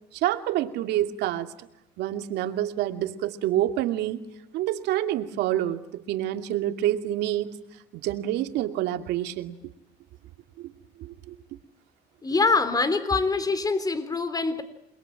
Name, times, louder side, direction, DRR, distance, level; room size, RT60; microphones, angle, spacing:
voice 1, 0.1-1.5 2.0-4.2 4.5-7.5 7.9-9.6 10.6-10.7 11.0-11.4, right 13 dB, 85° right, 7 dB, 2.6 m, -27 dB
voice 2, 12.2-14.6, left 3 dB, 20° left, 13 dB, 3.6 m, -24 dB
29.0 x 22.5 x 9.1 m, 0.82 s
cardioid pair, 110°, 17 cm